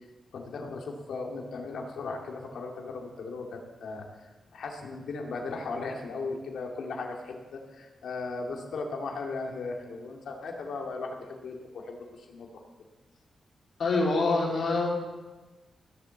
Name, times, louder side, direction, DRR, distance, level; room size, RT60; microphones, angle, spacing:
voice 1, 0.3-12.5, left 3 dB, 75° left, 1 dB, 2.3 m, -37 dB
voice 2, 13.8-14.9, left 3 dB, 60° left, -3 dB, 3.9 m, -25 dB
15.0 x 7.9 x 7.1 m, 1.2 s
wide cardioid pair, 170°, 0 cm